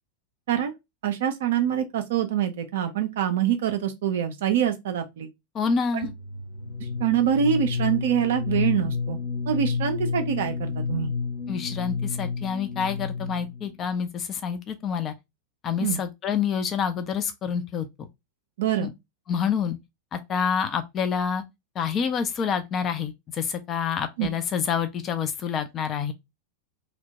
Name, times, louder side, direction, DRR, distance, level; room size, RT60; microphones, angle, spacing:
voice 1, 1.0-5.3 7.0-9.2 9.5-11.1 15.8-16.0 18.6-18.9 24.2-24.3, right 9 dB, 55° right, 0.4 m, -25 dB
voice 2, 5.5-6.1 11.5-15.1 15.6-18.1 18.8-18.9 19.3-19.8 20.1-21.4 21.8-26.1, left 7 dB, 30° left, 0.4 m, -27 dB
sound 1, 6.0-13.7, left 5 dB, 50° left, 0.8 m, -30 dB
2.8 x 2.1 x 2.8 m
figure-of-eight pair, 90°, 0 cm